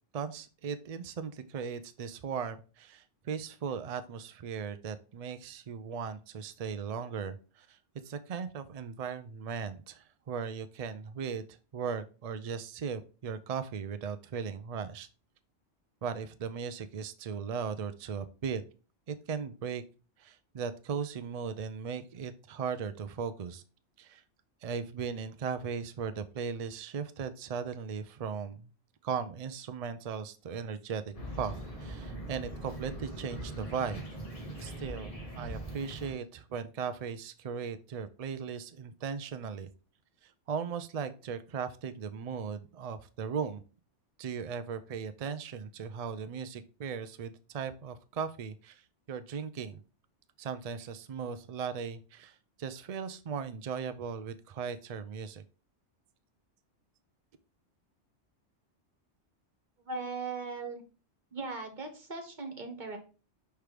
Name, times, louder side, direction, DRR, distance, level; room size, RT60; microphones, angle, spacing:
voice 1, 0.1-7.8 8.0-15.1 16.0-18.6 19.1-19.8 20.2-23.6 24.0-24.2 24.6-28.7 29.0-34.1 34.6-39.7 40.2-43.6 44.2-48.8 49.1-49.8 50.4-55.4, right 6 dB, 65° right, 11 dB, 0.3 m, -37 dB
sound 1, 31.1-36.1, right 1 dB, 30° left, 1.6 m, -41 dB
voice 2, 59.8-60.8 61.3-63.0, right 3 dB, 40° right, 4 dB, 1.4 m, -38 dB
6.0 x 3.4 x 4.8 m, 0.35 s
omnidirectional pair, 1.2 m